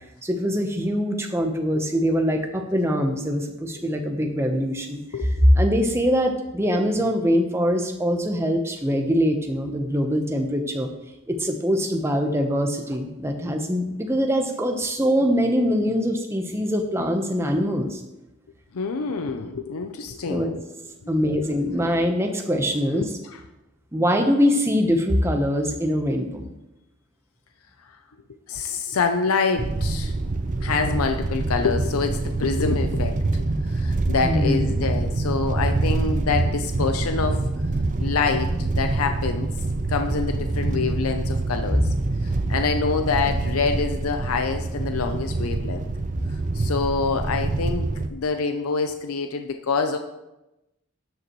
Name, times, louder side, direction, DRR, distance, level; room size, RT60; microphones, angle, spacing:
voice 1, 0.2-5.0 5.5-10.9 11.3-18.0 20.3-20.5 21.1-23.1 23.9-26.5 34.2-34.8, equal, 10° right, 3 dB, 0.8 m, -23 dB
voice 2, 18.7-20.6 21.6-21.7 22.9-23.1 27.9-28.0 28.5-30.1 30.6-37.4 38.0-39.5 39.9-41.9 42.2-45.9 46.3-50.0, left 4 dB, 90° left, 6 dB, 0.6 m, -26 dB
sound 1, 29.6-48.1, right 2 dB, 35° right, 0.4 m, -25 dB
12.5 x 8.0 x 3.1 m, 0.97 s
head